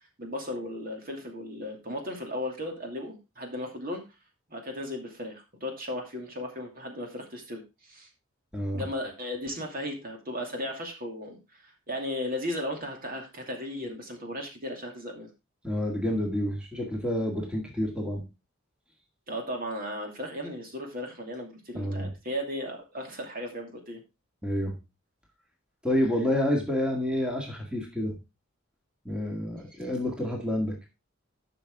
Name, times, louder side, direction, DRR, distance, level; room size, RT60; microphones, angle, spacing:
voice 1, 0.2-4.0 4.5-8.1 8.7-15.3 19.3-24.0, left 1 dB, 45° right, 2 dB, 2.6 m, -36 dB
voice 2, 8.5-8.8 15.6-18.2 21.7-22.1 24.4-24.8 25.8-28.2 29.1-30.8, left 1 dB, 5° right, 1 dB, 2.0 m, -29 dB
12.0 x 6.1 x 3.6 m, 0.25 s
head